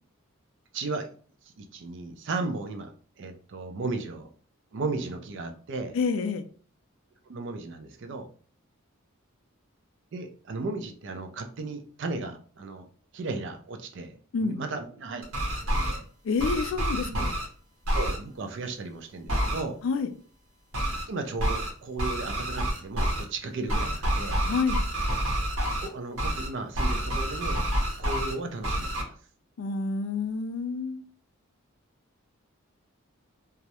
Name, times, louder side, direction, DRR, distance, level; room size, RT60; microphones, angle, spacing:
voice 1, 0.7-1.1 1.4-2.9 3.2-4.3 4.7-5.9 7.3-8.3 10.1-12.9 13.1-15.3 15.6-16.0 17.1-17.3 17.9-19.8 21.1-24.4 25.8-27.6 28.0-29.2, right 3 dB, 55° right, 0.4 m, -35 dB
voice 2, 5.9-6.5 14.3-14.6 16.2-17.4 19.8-20.1 24.4-24.8 29.6-31.1, left 4 dB, 65° left, 0.3 m, -28 dB
sound 1, 15.2-16.0 16.4-17.4 17.8-18.2 19.3-19.6 20.7-21.0 21.4-21.7 22.0-23.2 23.7-25.9 26.2-26.5 26.7-28.3 28.6-29.0, right 1 dB, 85° right, 0.8 m, -28 dB
2.3 x 2.0 x 2.8 m
head